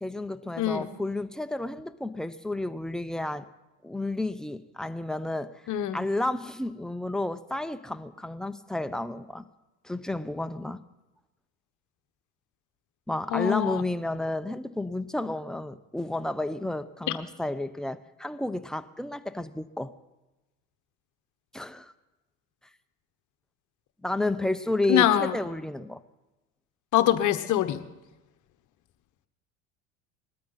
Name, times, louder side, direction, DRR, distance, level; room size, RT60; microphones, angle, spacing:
voice 1, 0.0-3.5 3.8-5.6 5.9-9.5 9.8-10.8 13.1-19.9 21.5-21.9 24.0-26.0, left 2 dB, ahead, 0.6 m, -31 dB
voice 2, 0.6-0.9 5.7-6.0 13.3-13.8 24.9-25.3 26.9-27.8, left 12 dB, 50° left, 1.1 m, -24 dB
20.5 x 13.0 x 4.1 m
hypercardioid pair, 75°, 39 cm